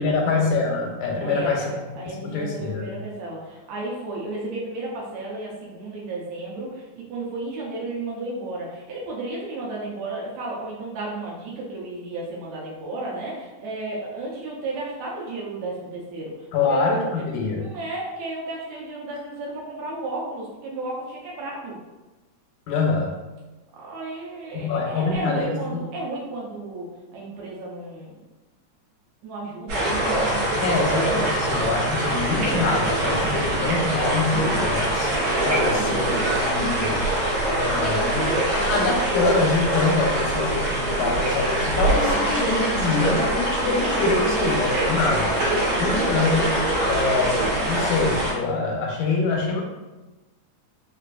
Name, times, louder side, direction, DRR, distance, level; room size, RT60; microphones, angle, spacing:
voice 1, 0.0-1.7 2.1-2.9 16.5-17.7 22.7-23.1 24.5-25.6 30.6-35.1 35.4-37.0 37.5-45.4 45.8-49.6, left 4 dB, 85° left, 0 dB, 2.1 m, -25 dB
voice 2, 1.2-16.9 17.4-21.8 23.7-28.1 29.2-30.0 45.5-46.0, right 2 dB, 80° right, -4 dB, 1.9 m, -33 dB
sound 1, 29.7-48.3, right 1 dB, 65° right, 2.3 m, -23 dB
sound 2, 32.2-40.1, left 1 dB, 40° left, 1.0 m, -41 dB
4.8 x 2.5 x 2.2 m, 1.1 s
omnidirectional pair, 3.3 m